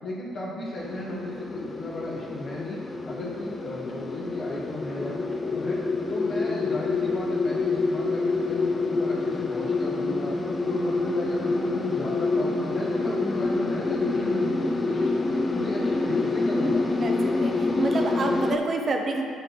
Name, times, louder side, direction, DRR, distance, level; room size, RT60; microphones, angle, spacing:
voice 1, 0.0-2.8 3.0-5.8 6.1-10.3 10.6-15.1 15.5-16.8, left 2 dB, 60° left, -7 dB, 1.5 m, -35 dB
sound 1, 0.8-18.6, left 3 dB, 30° left, 0.6 m, -27 dB
voice 2, 17.0-19.2, right 3 dB, 45° right, 2 dB, 0.7 m, -28 dB
9.7 x 5.0 x 3.1 m, 2.2 s
hypercardioid pair, 50°, 0 cm